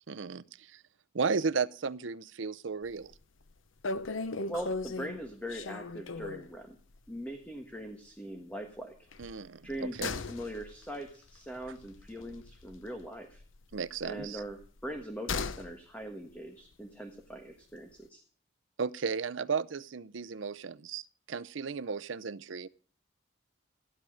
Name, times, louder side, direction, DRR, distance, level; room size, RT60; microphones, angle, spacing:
voice 1, 0.1-0.4 0.7-0.8 1.1-3.1 9.2-10.2 13.7-14.4 18.8-22.7, right 5 dB, 75° right, 0.6 m, -34 dB
sound 1, 2.9-3.2 3.5-3.6 3.8-6.5 6.9-7.1 7.4-7.5 9.1-13.0 13.3-15.7 16.0-16.1, left 3 dB, 85° left, 0.8 m, -38 dB
voice 2, 4.5-6.8 7.1-9.1 9.6-13.4 14.0-18.2, equal, 5° left, 1.4 m, -41 dB
15.0 x 11.0 x 6.4 m
head